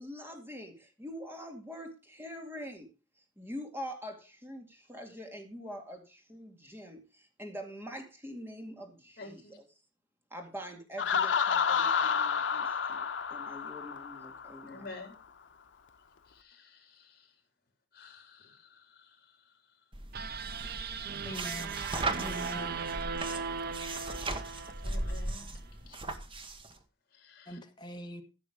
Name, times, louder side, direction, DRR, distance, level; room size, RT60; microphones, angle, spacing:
voice 1, 0.0-2.9 3.4-9.4 10.3-13.1 13.3-14.8, equal, 15° right, 2.4 m, -44 dB
voice 2, 9.2-9.6 14.6-15.2 16.3-17.3 17.9-19.5 24.3-25.5 25.8-26.0 26.4-26.6 27.1-27.6, left 3 dB, 55° left, 3.6 m, -51 dB
Laughter, 11.0-14.7, left 6 dB, 80° left, 0.7 m, -30 dB
sound 1, 19.9-26.7, right 2 dB, 30° right, 1.2 m, -38 dB
sound 2, 20.1-25.4, right 6 dB, 55° right, 0.7 m, -38 dB
voice 3, 21.2-21.8 22.1-22.7 27.5-28.2, equal, 25° left, 1.5 m, -42 dB
14.5 x 6.2 x 5.0 m
head